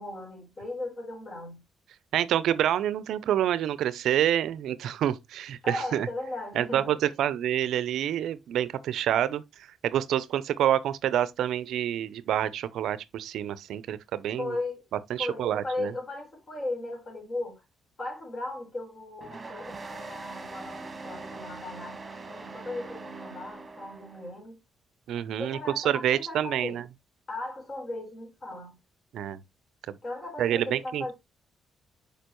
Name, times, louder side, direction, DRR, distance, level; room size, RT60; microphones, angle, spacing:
voice 1, 0.0-1.6 5.6-7.1 14.4-14.8 15.2-17.6 18.0-22.0 22.3-24.6 25.4-26.8 27.3-28.8 30.0-31.1, left 2 dB, 35° left, 4.1 m, -37 dB
voice 2, 2.1-6.1 6.5-9.4 9.8-14.5 15.1-15.9 25.1-26.8 29.1-29.4 29.9-30.0 30.4-31.1, right 11 dB, 75° right, 0.5 m, -27 dB
sound 1, 19.2-24.3, right 3 dB, 25° right, 1.7 m, -42 dB
6.7 x 5.0 x 3.0 m
cardioid pair, 90°, 0 cm